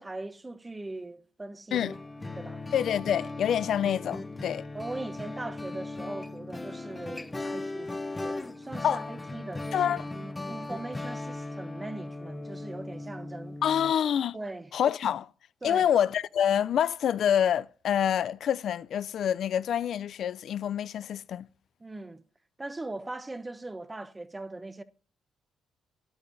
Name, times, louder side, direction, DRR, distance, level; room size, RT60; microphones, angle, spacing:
voice 1, 0.0-1.9 2.2-2.6 4.7-13.6 14.3-14.7 15.6-15.9 21.8-22.2 22.6-24.8, right 2 dB, 20° right, 0.9 m, -40 dB
sound 1, 1.7-13.9, left 2 dB, 15° left, 0.8 m, -38 dB
voice 2, 2.7-4.6 8.8-9.1 9.7-10.0 13.6-14.4 14.7-15.3 15.6-21.5, left 9 dB, 65° left, 0.4 m, -27 dB
12.5 x 10.5 x 2.7 m
cardioid pair, 90°, 0 cm